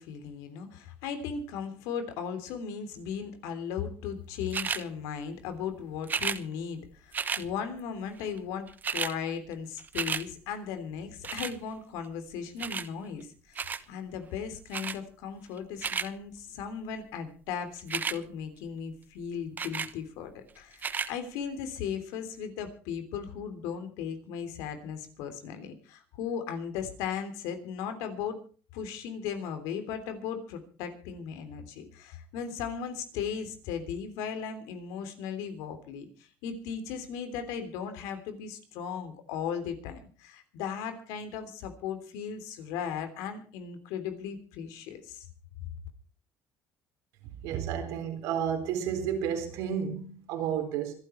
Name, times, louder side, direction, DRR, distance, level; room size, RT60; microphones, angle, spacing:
voice 1, 0.0-28.4 28.7-45.3 45.6-45.7, left 7 dB, 85° left, 3.3 m, -37 dB
sound 1, 4.5-4.8 6.0-6.4 7.1-7.4 8.4-8.5 8.7-9.1 9.5-10.2 11.2-11.6 12.6-12.9 13.5-13.8 14.7-15.0 15.6-16.1 17.8-18.2 19.6-19.9 20.7-21.1 21.8-21.9, right 6 dB, 30° right, 1.0 m, -32 dB
voice 2, 47.4-50.9, right 8 dB, 85° right, 4.1 m, -31 dB
26.0 x 8.9 x 4.5 m
cardioid pair, 110°, 6 cm